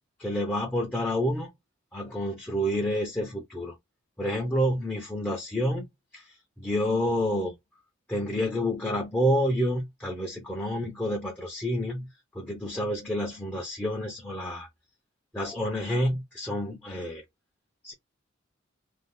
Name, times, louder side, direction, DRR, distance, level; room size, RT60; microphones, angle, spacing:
voice 1, 0.2-1.5 1.9-3.7 4.2-5.9 6.1-7.5 8.1-12.1 12.3-14.7 15.3-17.2 17.8-17.9, equal, 10° left, 0.7 m, -29 dB
2.7 x 2.3 x 3.7 m
head